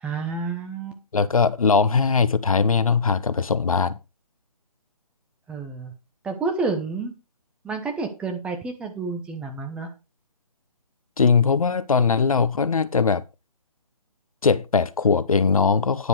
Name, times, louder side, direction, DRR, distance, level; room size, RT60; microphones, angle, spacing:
voice 1, 0.0-1.0 5.5-5.9 6.2-7.1 7.6-9.9, right 4 dB, 5° right, 0.9 m, -29 dB
voice 2, 1.1-4.0 11.2-13.2 14.4-16.1, left 5 dB, 60° left, 0.8 m, -20 dB
9.9 x 6.9 x 4.8 m
figure-of-eight pair, 145°, 20 cm